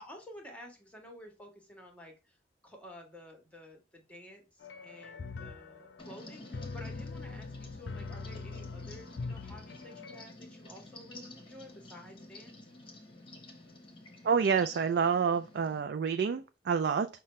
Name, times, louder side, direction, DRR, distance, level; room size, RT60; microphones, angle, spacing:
voice 1, 0.0-2.4 2.6-12.7, left 1 dB, 5° left, 1.1 m, -51 dB
sound 1, 4.6-10.2, left 4 dB, 85° left, 0.5 m, -42 dB
sound 2, 6.0-15.8, left 2 dB, 30° left, 0.9 m, -51 dB
voice 2, 14.2-17.1, right 6 dB, 65° right, 0.3 m, -28 dB
5.6 x 2.2 x 3.1 m
head